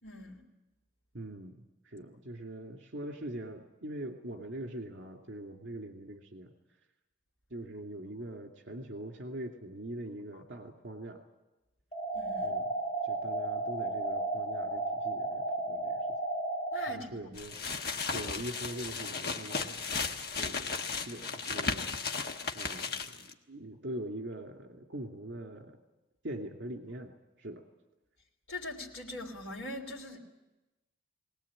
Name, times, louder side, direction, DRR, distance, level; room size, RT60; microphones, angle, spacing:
voice 1, 0.0-0.4 12.1-12.6 16.7-17.3 28.5-30.2, left 2 dB, 75° left, -2 dB, 3.5 m, -42 dB
voice 2, 1.1-1.6 1.9-6.5 7.5-11.2 12.4-12.7 13.0-16.1 16.9-17.6 18.1-19.8 20.3-21.9 22.5-25.8 26.2-27.6, right 1 dB, 65° right, 3 dB, 2.3 m, -42 dB
sound 1, 11.9-16.9, right 2 dB, 35° left, 5.3 m, -33 dB
sound 2, 17.4-23.3, left 4 dB, 50° left, 1.2 m, -35 dB
21.5 x 19.0 x 8.7 m, 1.0 s
head